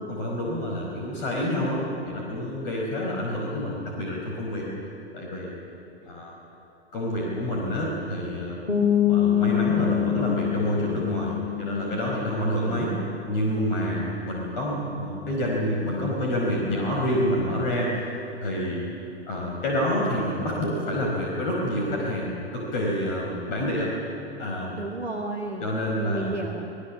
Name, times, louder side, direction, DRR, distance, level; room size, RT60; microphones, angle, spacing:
voice 1, 0.1-4.6 5.1-5.6 6.1-6.3 6.9-8.6 9.0-12.9 13.3-17.9 18.4-18.8 19.3-23.9 24.4-24.8 25.6-26.3, equal, 50° left, -2 dB, 5.0 m, -28 dB
sound 1, 8.7-14.3, left 10 dB, 85° left, 6.2 m, -26 dB
voice 2, 12.5-13.2 13.5-14.1 24.8-26.7, right 2 dB, 85° right, 0 dB, 2.0 m, -34 dB
29.0 x 20.0 x 7.4 m, 2.9 s
figure-of-eight pair, 95°, 33 cm